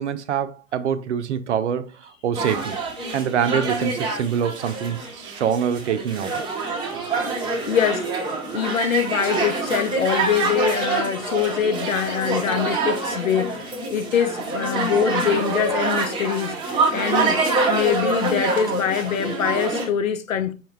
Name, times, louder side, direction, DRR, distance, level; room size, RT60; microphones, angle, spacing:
voice 1, 0.0-2.8 3.1-6.4, right 8 dB, 60° right, 0.6 m, -25 dB
sound 1, 2.3-19.9, right 3 dB, 10° right, 0.7 m, -26 dB
voice 2, 7.4-8.1 8.5-16.6 16.9-17.4 17.7-20.5, left 8 dB, 80° left, 0.6 m, -24 dB
5.5 x 2.2 x 3.2 m
figure-of-eight pair, 105°, 39 cm